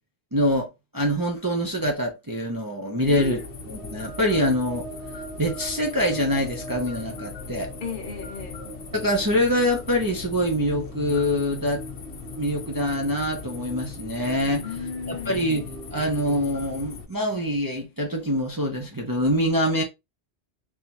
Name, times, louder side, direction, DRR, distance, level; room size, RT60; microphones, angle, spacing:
voice 1, 0.3-0.7 0.9-3.4 3.7-4.9 5.4-7.7 8.9-11.8 12.4-14.6 15.1-15.6 15.9-19.8, equal, 25° right, 0.6 m, -24 dB
sound 1, 3.0-17.1, left 5 dB, 75° left, 1.0 m, -40 dB
voice 2, 3.1-3.5 7.8-8.6 14.5-15.5, left 5 dB, 55° left, 0.8 m, -34 dB
sound 2, 3.3-16.5, right 1 dB, 75° right, 1.5 m, -41 dB
4.0 x 2.8 x 2.9 m
omnidirectional pair, 1.1 m